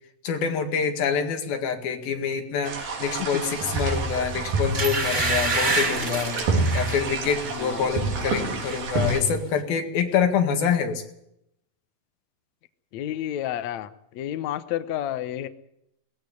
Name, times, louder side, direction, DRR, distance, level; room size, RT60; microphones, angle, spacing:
voice 1, 0.2-6.4 6.7-11.0, left 6 dB, 85° left, 5 dB, 3.9 m, -26 dB
sound 1, 2.6-9.2, right 3 dB, 80° right, 5.0 m, -28 dB
sound 2, 4.0-4.2 4.7-7.1 7.5-7.8 8.1-8.8 9.1-9.2, right 2 dB, 20° right, 2.5 m, -27 dB
voice 2, 7.6-8.0 12.9-13.9 14.1-15.5, left 12 dB, 65° left, 11 dB, 1.9 m, -30 dB
18.5 x 15.0 x 9.6 m, 0.78 s
omnidirectional pair, 4.1 m